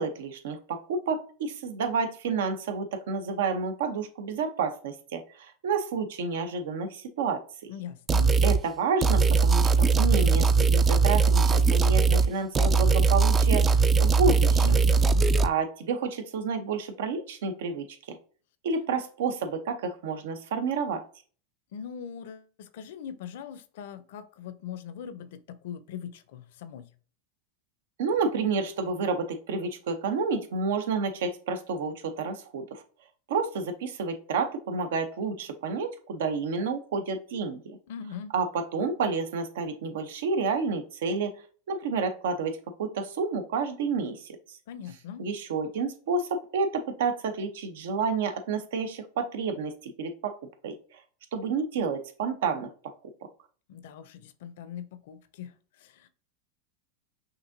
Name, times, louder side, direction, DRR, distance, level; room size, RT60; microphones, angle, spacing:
voice 1, 0.0-7.7 8.4-14.8 15.4-18.2 18.6-21.0 28.0-32.8 33.3-37.8 38.3-41.3 41.7-44.4 45.2-50.3 50.6-51.0 51.3-52.7, right 5 dB, 75° right, 0.7 m, -30 dB
voice 2, 7.7-8.3 14.6-15.3 21.7-26.9 37.9-38.3 44.7-45.2 53.7-56.1, left 8 dB, 70° left, 0.5 m, -41 dB
sound 1, 8.1-8.6 9.0-12.3 12.5-15.5, right 4 dB, 20° right, 0.3 m, -20 dB
5.9 x 2.6 x 2.6 m
hypercardioid pair, 115°, 0 cm